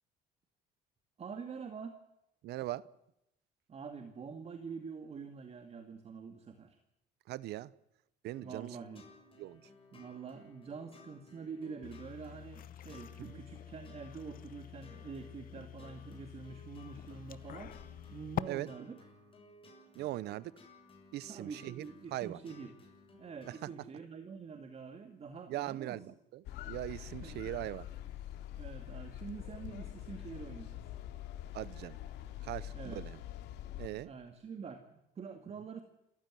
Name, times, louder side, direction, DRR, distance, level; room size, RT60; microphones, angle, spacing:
voice 1, 1.2-2.0 3.7-6.8 8.4-9.1 9.9-17.7 18.1-19.0 21.3-22.7 23.1-26.0 27.2-27.6 28.6-30.8 32.7-33.0 34.0-35.8, right 5 dB, 40° right, 7 dB, 2.3 m, -46 dB
voice 2, 2.4-2.9 7.3-7.7 8.2-8.7 9.4-9.6 13.2-13.4 18.5-18.7 19.9-20.5 21.1-21.8 22.1-22.4 23.5-23.7 25.5-27.8 31.5-32.0 32.4-33.2 33.8-34.1, right 15 dB, 75° right, 21 dB, 0.8 m, -40 dB
sound 1, 8.3-23.7, left 2 dB, 30° left, 7.3 m, -59 dB
sound 2, 11.8-18.4, left 11 dB, 55° left, 0.9 m, -46 dB
sound 3, 26.4-33.9, left 12 dB, 90° left, 2.7 m, -45 dB
28.0 x 15.0 x 7.6 m, 0.85 s
cardioid pair, 110°, 17 cm